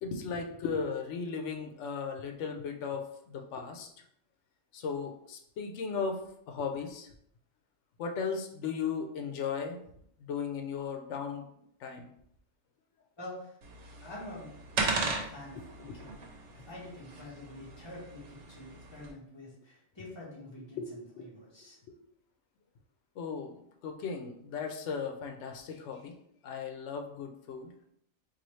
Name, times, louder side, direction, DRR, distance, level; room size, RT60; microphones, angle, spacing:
voice 1, 0.0-3.9 4.7-6.2 6.5-7.1 8.0-9.8 10.2-11.5 11.8-12.1 15.9-16.1 20.8-21.3 23.2-26.1 26.4-27.7, left 5 dB, 90° left, 3 dB, 0.9 m, -36 dB
voice 2, 13.2-13.6 14.0-14.5 14.8-16.2 16.5-21.8, left 1 dB, 25° left, -6 dB, 1.2 m, -47 dB
sound 1, 13.6-19.1, right 3 dB, 85° right, 1.0 m, -37 dB
4.0 x 2.6 x 3.1 m, 0.70 s
omnidirectional pair, 1.2 m